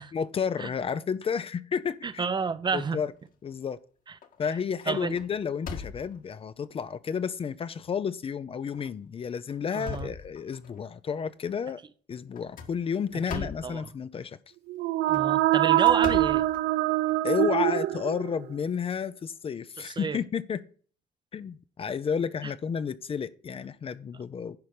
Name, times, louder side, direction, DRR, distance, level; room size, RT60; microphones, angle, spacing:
voice 1, 0.1-2.3 2.7-3.1 3.4-3.8 4.4-11.8 12.1-14.4 17.2-20.6 21.3-24.6, left 7 dB, 35° left, 0.6 m, -31 dB
voice 2, 2.0-3.0 4.9-5.2 9.7-10.1 13.3-13.8 15.1-16.4 19.8-20.2, right 5 dB, 25° right, 0.7 m, -30 dB
sound 1, 3.2-3.8 4.2-4.5 4.8-6.4 7.1-7.2 7.6-7.7 8.7-8.9 9.4-10.8 12.3-13.8 14.9-17.2, left 5 dB, 55° left, 1.7 m, -40 dB
sound 2, 14.7-18.5, right 16 dB, 80° right, 0.6 m, -24 dB
10.5 x 5.6 x 4.8 m
cardioid pair, 110°, 17 cm